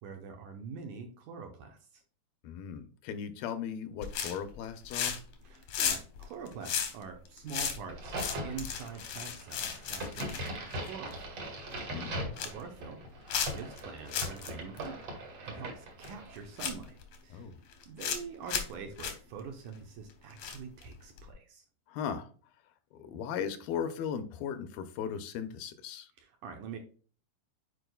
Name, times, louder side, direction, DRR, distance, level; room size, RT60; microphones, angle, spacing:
voice 1, 0.0-2.0 5.4-8.2 8.4-11.4 11.7-11.9 12.3-13.0 13.5-15.1 15.4-17.0 17.2-17.5 17.9-21.7 26.2-26.8, right 6 dB, 70° right, 4 dB, 2.1 m, -45 dB
voice 2, 2.4-5.2 11.7-12.2 17.3-17.5 21.9-22.3 22.9-26.1, left 7 dB, 80° left, 10 dB, 2.5 m, -37 dB
sound 1, 4.0-4.5 4.8-5.3 5.6-11.2 11.6-11.8 12.1-12.6 13.3-13.8 14.1-14.5 14.8-14.9 16.0-16.1 16.6-17.2 17.7-18.2 18.5-18.7 19.0-19.1 20.4-20.8 21.2-21.3, left 7 dB, 65° left, 1.7 m, -34 dB
Crack, 7.9-16.4, right 1 dB, 45° right, 2.5 m, -40 dB
9.1 x 4.6 x 2.3 m, 0.40 s
omnidirectional pair, 4.3 m